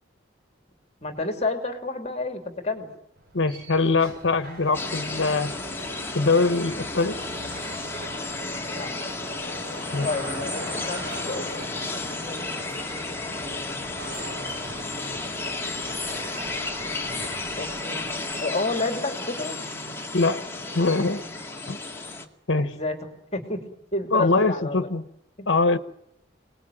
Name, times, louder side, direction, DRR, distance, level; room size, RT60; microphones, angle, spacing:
voice 1, 1.0-2.9 8.7-8.9 10.0-15.2 15.4-15.9 16.4-16.5 16.8-17.2 17.6-18.0 18.4-19.6 22.6-23.6 23.9-24.8 25.4-25.5, left 2 dB, 35° left, 2.8 m, -32 dB
sound 1, 3.2-18.3, right 1 dB, 55° right, 6.8 m, -42 dB
voice 2, 3.3-5.5 6.1-7.2 9.9-10.1 20.1-20.4 20.7-21.2 21.7-21.8 22.5-22.8 24.1-25.1 25.5-25.8, left 3 dB, 80° left, 1.2 m, -22 dB
sound 2, 4.7-22.2, left 2 dB, 15° left, 2.1 m, -33 dB
27.0 x 19.5 x 9.2 m
head